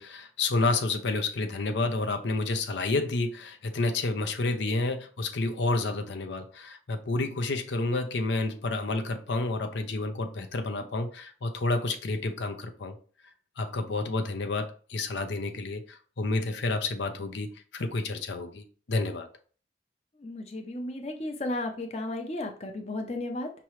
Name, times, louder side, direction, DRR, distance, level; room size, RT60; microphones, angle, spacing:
voice 1, 0.0-12.9 13.6-19.3, left 2 dB, 80° left, 6 dB, 0.6 m, -30 dB
voice 2, 20.2-23.5, left 2 dB, 35° left, 4 dB, 0.6 m, -34 dB
5.7 x 3.0 x 3.1 m, 0.41 s
head